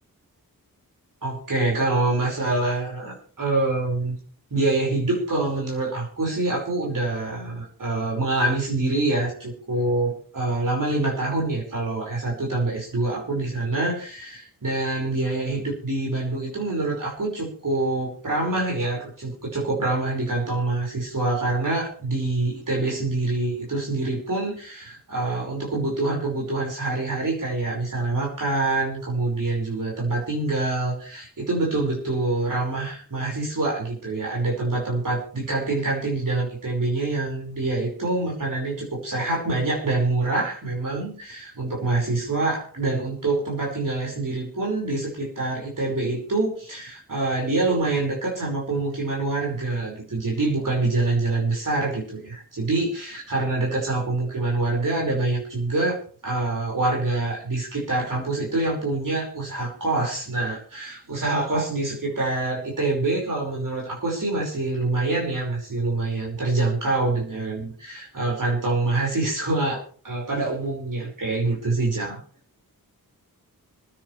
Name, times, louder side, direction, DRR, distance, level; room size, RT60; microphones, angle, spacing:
voice 1, 1.2-4.2 4.5-72.2, right 2 dB, 60° right, -2 dB, 5.4 m, -26 dB
26.5 x 9.7 x 3.3 m, 0.43 s
wide cardioid pair, 105°, 36 cm